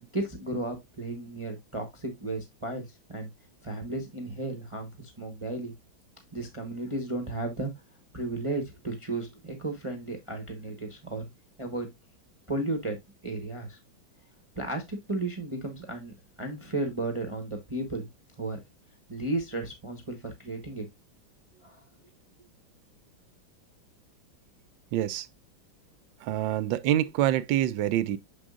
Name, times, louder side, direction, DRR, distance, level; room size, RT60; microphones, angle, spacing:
voice 1, 0.1-3.3 3.6-5.7 6.3-7.7 8.1-11.2 11.6-11.9 12.5-13.0 13.2-13.8 14.6-18.1 18.4-18.6 19.1-20.8 21.6-21.8, right 2 dB, 20° right, 0.9 m, -34 dB
voice 2, 24.9-25.3 26.2-28.2, right 12 dB, 75° right, 1.3 m, -26 dB
6.8 x 6.2 x 2.4 m
omnidirectional pair, 2.1 m